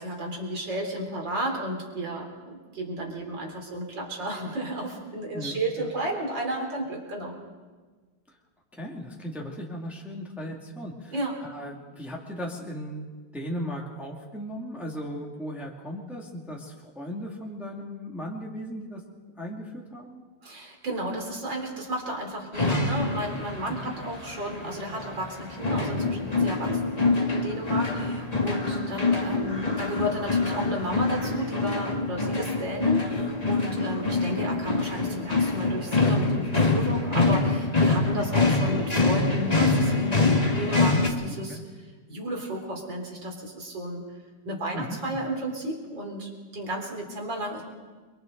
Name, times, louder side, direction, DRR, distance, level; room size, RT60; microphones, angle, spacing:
voice 1, 0.0-7.4 11.1-11.4 20.4-41.6 42.1-44.0 44.4-47.6, right 1 dB, 70° right, 1 dB, 4.5 m, -33 dB
voice 2, 5.3-5.9 8.7-11.1 11.4-13.1 13.3-19.0 19.4-20.2 23.7-23.8 32.6-32.8 41.3-41.6 44.7-45.0, equal, ahead, -2 dB, 2.2 m, -37 dB
sound 1, 22.5-41.1, left 3 dB, 20° left, 1.9 m, -25 dB
29.5 x 24.0 x 4.0 m, 1.4 s
omnidirectional pair, 2.1 m